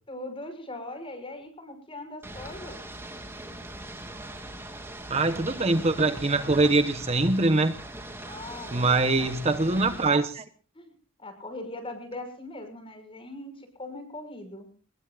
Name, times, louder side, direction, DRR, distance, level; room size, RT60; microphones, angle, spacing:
voice 1, 0.1-2.8 8.3-9.4 9.9-10.0 10.7-10.9 11.2-14.7, left 2 dB, 25° left, 8 dB, 6.0 m, -40 dB
Ocean / Boat Water vehicle, 2.2-10.1, right 1 dB, 10° right, 3.3 m, -41 dB
voice 2, 5.1-7.7 8.7-10.4, right 2 dB, 30° right, 9 dB, 1.1 m, -23 dB
27.0 x 21.0 x 2.5 m, 0.40 s
head